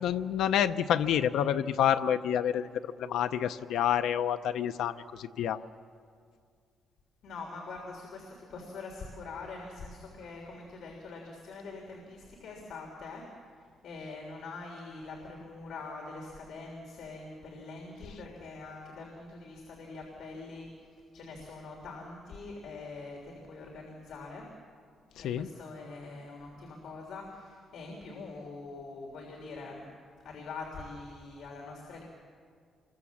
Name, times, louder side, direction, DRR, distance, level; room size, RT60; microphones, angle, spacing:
voice 1, 0.0-2.7 3.0-5.6 25.2-25.5, left 9 dB, 90° left, 9 dB, 0.6 m, -28 dB
voice 2, 7.2-13.3 13.8-24.5 25.2-29.9 30.2-32.1, left 3 dB, 60° left, 0 dB, 3.4 m, -44 dB
26.5 x 22.5 x 7.2 m, 2.1 s
cardioid pair, 180°, 0 cm